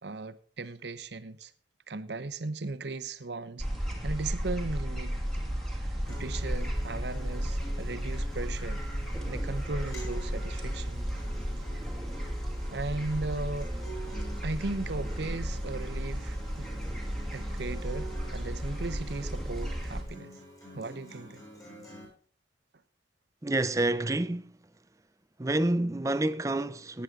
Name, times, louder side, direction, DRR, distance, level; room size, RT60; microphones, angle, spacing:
voice 1, 0.0-1.5 1.9-3.7 4.0-5.2 5.8-8.8 9.3-11.1 12.7-13.7 14.4-16.7 17.3-20.3 20.7-21.4, right 3 dB, 65° right, 0.8 m, -37 dB
sound 1, 3.6-20.0, equal, ahead, 2.2 m, -34 dB
Acoustic guitar, 6.0-22.1, equal, 15° left, 7.5 m, -47 dB
voice 2, 23.4-24.7 25.4-27.0, right 2 dB, 15° right, 0.5 m, -28 dB
17.0 x 9.8 x 3.7 m
head